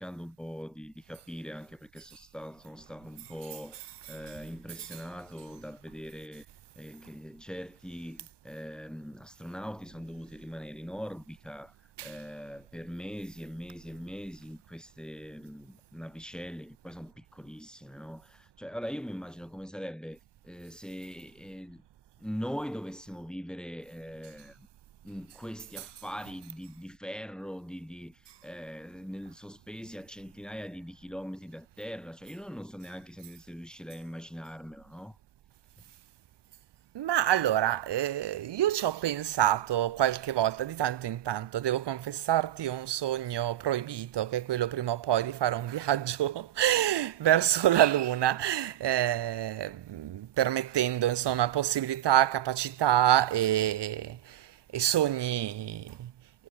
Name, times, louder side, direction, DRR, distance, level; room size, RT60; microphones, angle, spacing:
voice 1, 0.0-6.5 6.8-11.8 12.0-20.2 20.4-21.8 22.2-24.7 25.0-35.2, equal, ahead, 7.8 m, -41 dB
voice 2, 36.9-54.5 54.7-56.1, right 12 dB, 90° right, 0.5 m, -27 dB
cardioid pair, 60°, 41 cm